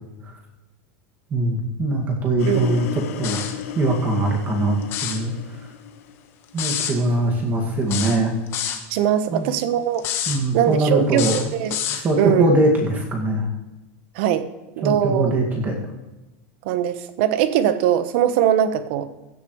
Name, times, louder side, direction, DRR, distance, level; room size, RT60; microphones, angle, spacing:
voice 1, 1.3-3.4 3.8-5.7 6.5-8.4 9.3-9.5 10.3-11.5 12.0-13.5 14.8-15.8, right 1 dB, 20° right, 1 dB, 2.1 m, -22 dB
sound 1, 2.4-6.5, left 9 dB, 80° left, 1.1 m, -34 dB
voice 2, 2.5-2.8 8.9-10.0 10.5-11.8 12.2-12.5 14.1-14.5 14.8-15.3 16.6-19.1, right 10 dB, 50° right, 11 dB, 1.1 m, -21 dB
sound 2, 3.2-3.6 4.8-5.2 6.6-7.0 7.9-8.8 10.0-10.4 11.1-12.0, left 9 dB, 30° left, 1.4 m, -27 dB
16.5 x 12.0 x 3.2 m, 1.1 s
supercardioid pair, 170°, 8 cm